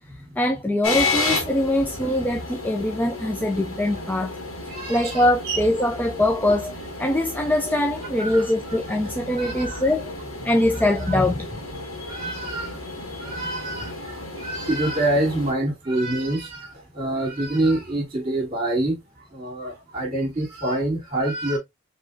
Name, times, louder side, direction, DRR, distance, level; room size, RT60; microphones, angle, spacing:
voice 1, 0.4-4.4 4.9-10.1 10.4-11.5, left 1 dB, 10° left, 0.3 m, -23 dB
sound 1, 0.8-15.5, left 3 dB, 85° left, 1.7 m, -32 dB
voice 2, 4.7-5.6 8.2-8.5 9.3-9.8 10.5-10.6 11.1-11.2 11.8-21.6, right 1 dB, 25° right, 1.8 m, -27 dB
4.9 x 3.1 x 2.5 m
head